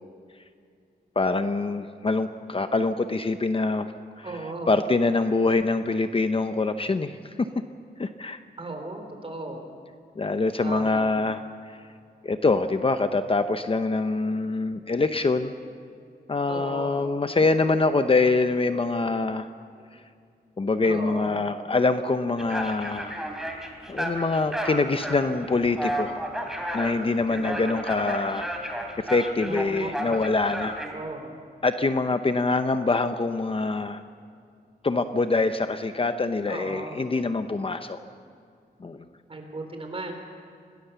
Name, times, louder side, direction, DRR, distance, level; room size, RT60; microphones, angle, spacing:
voice 1, 1.2-3.9 4.2-4.3 4.7-7.5 8.0-8.4 10.2-11.4 11.7-11.8 12.2-15.5 16.3-19.5 20.6-23.2 23.9-26.1 26.7-28.5 29.1-30.8 31.6-34.0 34.8-38.0 38.8-39.0, left 3 dB, 30° left, 9 dB, 0.8 m, -24 dB
voice 2, 4.2-4.7 8.6-9.7 10.6-11.2 16.5-17.1 20.8-21.4 27.4-27.8 29.4-30.1 30.9-31.4 36.5-37.0 39.3-40.1, right 2 dB, 35° right, 4 dB, 3.9 m, -36 dB
sound 1, 22.4-30.9, right 1 dB, ahead, 3.2 m, -33 dB
26.5 x 19.0 x 6.9 m, 2.3 s
wide cardioid pair, 110°, 18 cm